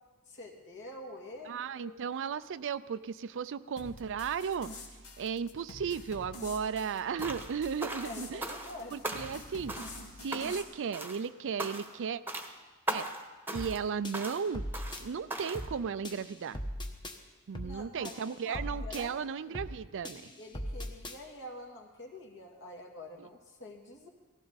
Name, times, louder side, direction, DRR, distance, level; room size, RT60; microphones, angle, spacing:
voice 1, 0.3-2.0 8.0-9.0 17.6-19.6 20.4-24.1, left 1 dB, 55° left, 1 dB, 2.2 m, -46 dB
voice 2, 1.5-4.7 5.2-8.5 8.9-9.8 10.2-12.2 12.9-13.1 13.5-14.6 15.0-16.6 17.5-20.3 23.2-23.3, right 6 dB, 55° right, 15 dB, 0.4 m, -35 dB
sound 1, 3.8-10.6, left 2 dB, 75° left, 2.0 m, -47 dB
sound 2, 7.2-7.5 7.8-8.8 9.0-9.4 9.7-10.0 10.3-10.7 10.9-11.2 11.6-12.0 12.3-12.5 12.9-13.2 13.5-13.8 14.1-14.4 14.7-15.0 15.3-15.6, right 1 dB, 10° right, 1.1 m, -38 dB
sound 3, 13.5-13.8 14.0-15.0 15.5-15.8 16.0-17.2 17.5-17.8 18.0-19.0 19.5-19.8 20.0-21.2, equal, 20° left, 1.1 m, -39 dB
18.0 x 15.5 x 4.0 m, 1.3 s
head